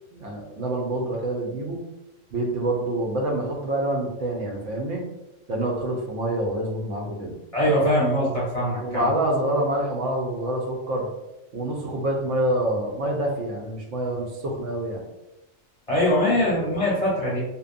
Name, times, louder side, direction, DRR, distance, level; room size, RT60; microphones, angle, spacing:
voice 1, 0.1-1.8 2.3-5.0 5.5-7.3 8.8-11.1 11.5-15.0 16.3-16.5, right 1 dB, 85° right, -1 dB, 1.0 m, -26 dB
voice 2, 7.5-9.1 15.9-17.4, left 1 dB, 35° left, -6 dB, 0.7 m, -22 dB
2.8 x 2.1 x 2.4 m, 0.97 s
omnidirectional pair, 1.2 m